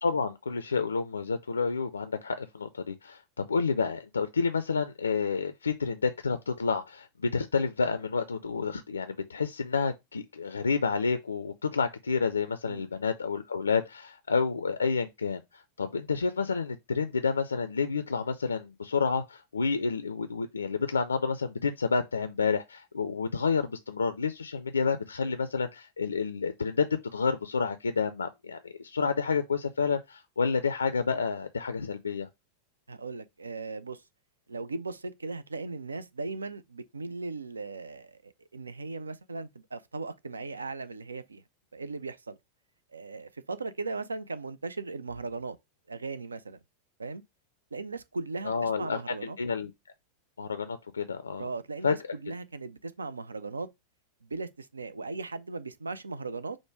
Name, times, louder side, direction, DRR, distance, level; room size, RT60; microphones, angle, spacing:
voice 1, 0.0-26.9 27.1-32.3 48.4-49.7 50.4-51.5 51.8-51.9, left 5 dB, 75° left, 0.3 m, -29 dB
voice 2, 32.9-34.0 34.5-41.4 41.7-42.4 42.9-45.6 45.9-46.6 47.0-47.2 47.7-49.4 51.4-53.7 54.2-56.6, right 3 dB, 75° right, 0.4 m, -38 dB
4.9 x 2.1 x 4.5 m
figure-of-eight pair, 90°, 0 cm